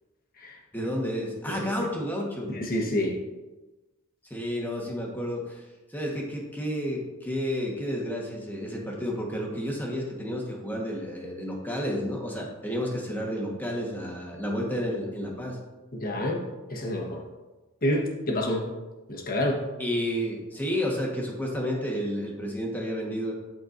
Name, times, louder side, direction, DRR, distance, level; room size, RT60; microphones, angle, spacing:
voice 1, 0.7-2.6 4.3-5.6 5.9-15.6 19.8-23.3, equal, 10° left, -2 dB, 1.4 m, -31 dB
voice 2, 1.5-1.9 2.5-3.2 15.9-17.2 17.8-18.6 19.1-19.7, left 1 dB, 45° left, 0 dB, 1.3 m, -28 dB
12.5 x 4.4 x 2.6 m, 1.1 s
head